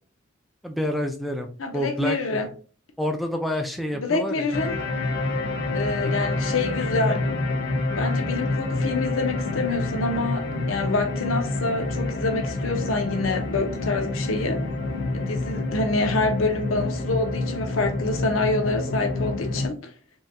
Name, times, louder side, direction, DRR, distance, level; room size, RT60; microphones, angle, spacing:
voice 1, 0.6-1.5 1.7-2.2 3.0-4.4, left 1 dB, ahead, 0.3 m, -27 dB
voice 2, 1.6-2.5 3.9-4.8 5.7-7.2 8.0-14.6 15.1-19.9, left 3 dB, 90° left, 0.7 m, -26 dB
sound 1, 4.5-19.7, left 2 dB, 60° left, 0.7 m, -28 dB
3.9 x 2.6 x 2.3 m
head